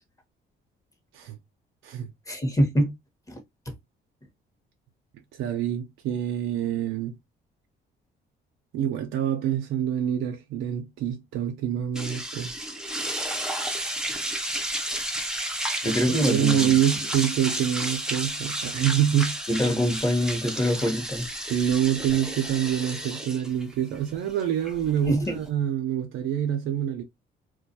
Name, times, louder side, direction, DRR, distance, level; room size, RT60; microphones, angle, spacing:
voice 1, 2.3-2.9 3.3-3.4 15.8-16.8 19.5-21.3 25.1-25.4, equal, 15° left, 1.0 m, -24 dB
voice 2, 5.4-7.2 8.7-12.5 16.1-19.4 21.5-27.0, right 10 dB, 85° right, 0.5 m, -26 dB
sound 1, 12.0-25.5, right 1 dB, 5° right, 0.5 m, -32 dB
2.3 x 2.2 x 2.6 m
cardioid pair, 90°, 20 cm